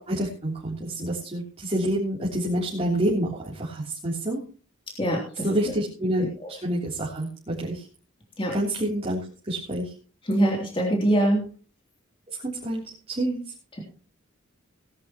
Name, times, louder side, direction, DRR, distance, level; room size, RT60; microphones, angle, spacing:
voice 1, 0.1-4.4 5.4-7.8 8.5-9.9 12.3-13.4, right 1 dB, 30° right, -6 dB, 3.4 m, -28 dB
voice 2, 5.0-5.5 6.2-6.3 8.4-8.5 10.2-11.4, right 1 dB, 25° left, -1 dB, 3.2 m, -23 dB
19.5 x 10.5 x 3.0 m, 0.37 s
head